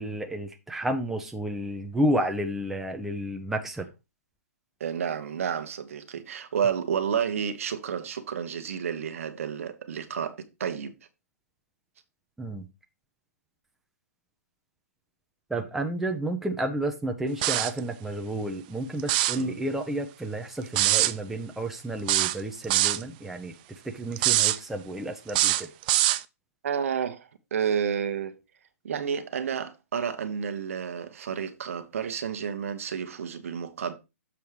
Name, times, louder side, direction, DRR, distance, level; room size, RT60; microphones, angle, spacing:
voice 1, 0.0-3.9 12.4-12.6 15.5-23.5 23.9-25.7, right 1 dB, 5° right, 0.8 m, -31 dB
voice 2, 4.8-11.0 19.4-19.6 26.6-28.4 28.8-33.9, right 7 dB, 60° right, 1.1 m, -30 dB
sound 1, 17.4-17.8 19.0-19.4 20.8-21.1 22.1-23.0 24.2-24.6 25.3-26.2, right 15 dB, 35° right, 0.4 m, -23 dB
7.2 x 4.5 x 4.7 m
figure-of-eight pair, 125°, 9 cm